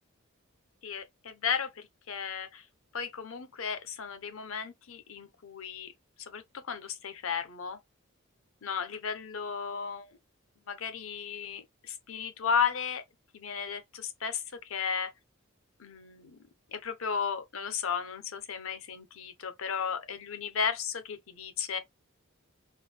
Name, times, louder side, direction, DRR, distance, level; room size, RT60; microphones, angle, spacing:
voice 1, 0.8-2.6 2.9-5.9 6.2-7.8 8.6-10.1 10.7-13.0 13.3-15.1 15.8-16.4 16.7-21.8, left 6 dB, 70° left, 0.6 m, -34 dB
3.7 x 2.1 x 3.2 m
head